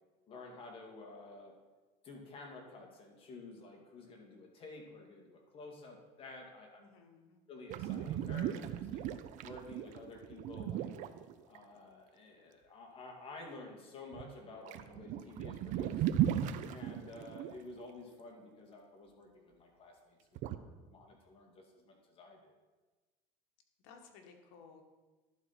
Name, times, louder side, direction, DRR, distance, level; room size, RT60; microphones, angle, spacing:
voice 1, 0.3-1.5 2.0-6.8 7.5-9.1 9.4-10.9 11.5-16.1 16.6-22.5, left 3 dB, 35° left, 1 dB, 2.1 m, -51 dB
voice 2, 6.8-7.4 23.8-24.8, left 5 dB, 80° left, 3 dB, 1.5 m, -57 dB
sound 1, 7.7-11.6 14.1-14.3 14.6-17.6 20.4-20.6, right 11 dB, 55° right, 0.6 m, -36 dB
11.5 x 4.3 x 5.9 m, 1.3 s
supercardioid pair, 125°, 15 cm